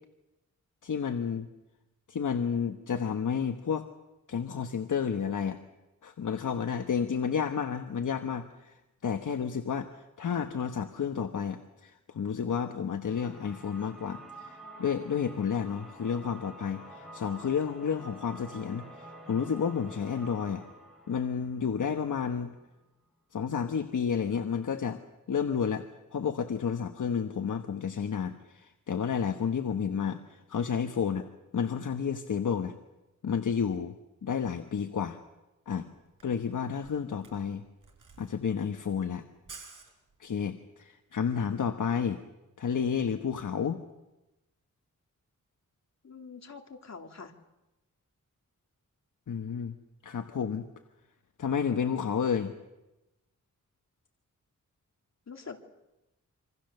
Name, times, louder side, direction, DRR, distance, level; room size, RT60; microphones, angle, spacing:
voice 1, 0.8-1.5 2.1-3.9 4.3-5.6 6.0-20.6 21.1-22.5 23.3-25.0 25.3-31.3 31.5-32.7 33.2-34.0 34.2-35.2 35.7-35.9 36.2-37.6 38.2-39.2 40.2-42.2 42.6-43.8 49.3-49.8 50.0-50.7 51.4-52.6, left 7 dB, 75° left, 6 dB, 1.2 m, -31 dB
sound 1, 13.0-22.7, right 1 dB, ahead, 7.5 m, -49 dB
Camera, 36.0-40.6, right 4 dB, 85° right, 4.5 m, -52 dB
voice 2, 46.0-47.3 55.3-55.6, left 5 dB, 60° left, 3 dB, 2.4 m, -45 dB
26.5 x 25.5 x 6.7 m, 1.0 s
wide cardioid pair, 140°, 31 cm